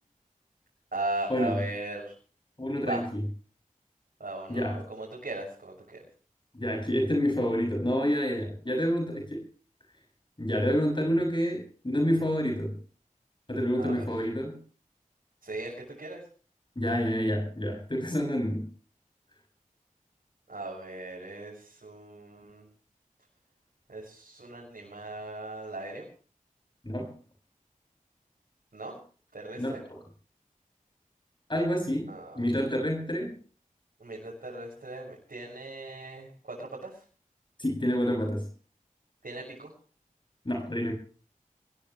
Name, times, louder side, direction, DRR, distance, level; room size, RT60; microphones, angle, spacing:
voice 1, 0.9-2.1 2.8-3.0 4.2-6.0 13.8-14.1 15.4-16.2 20.5-22.7 23.9-26.1 28.7-29.0 29.3-29.8 32.1-32.5 34.0-37.0 39.2-39.7, right 2 dB, 85° right, -3 dB, 7.0 m, -38 dB
voice 2, 2.6-3.2 4.5-4.8 6.5-9.5 10.4-12.8 13.5-14.6 16.8-18.7 26.8-27.2 29.6-30.0 31.5-33.4 37.6-38.5 40.5-40.9, equal, 35° left, 1 dB, 7.0 m, -28 dB
21.5 x 18.5 x 3.3 m, 0.40 s
wide cardioid pair, 40°, 14 cm